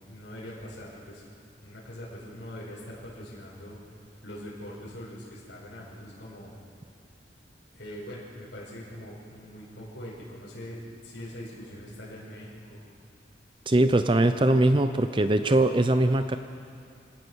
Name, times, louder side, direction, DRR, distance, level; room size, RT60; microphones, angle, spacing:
voice 1, 0.1-1.2 1.6-6.6 7.7-12.9, equal, 70° left, -7 dB, 5.5 m, -42 dB
voice 2, 13.7-16.4, right 1 dB, 25° right, 9 dB, 0.6 m, -21 dB
26.5 x 18.0 x 6.4 m, 2.4 s
head